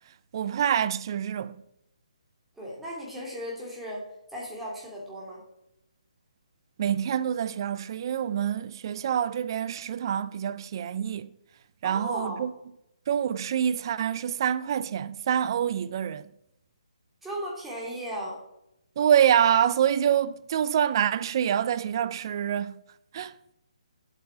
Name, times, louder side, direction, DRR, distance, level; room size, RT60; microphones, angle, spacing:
voice 1, 0.3-1.6 6.8-11.3 11.8-12.5 13.1-16.2 19.0-22.8 23.1-23.3, right 9 dB, 40° right, 0.4 m, -26 dB
voice 2, 2.6-4.0 4.3-5.4 11.8-12.5 17.2-18.4, equal, 5° right, 2.8 m, -36 dB
10.0 x 8.1 x 5.0 m
hypercardioid pair, 155°, 4 cm